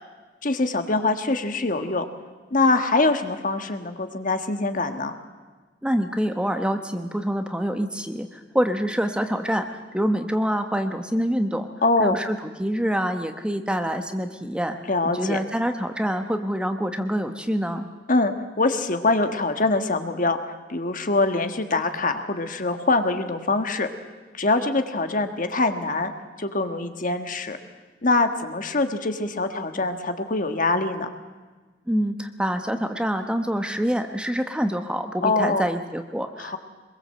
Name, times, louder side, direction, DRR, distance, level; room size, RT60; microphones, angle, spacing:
voice 1, 0.4-2.1 2.5-5.1 11.8-12.2 14.9-15.4 18.1-20.4 20.7-23.9 24.3-26.1 26.4-27.6 28.0-31.1 35.2-35.6 36.4-36.6, left 3 dB, 45° left, 7 dB, 1.6 m, -23 dB
voice 2, 5.8-11.7 12.0-14.8 15.0-17.9 31.9-36.6, equal, 5° right, 6 dB, 1.0 m, -26 dB
24.0 x 22.0 x 7.7 m, 1.4 s
head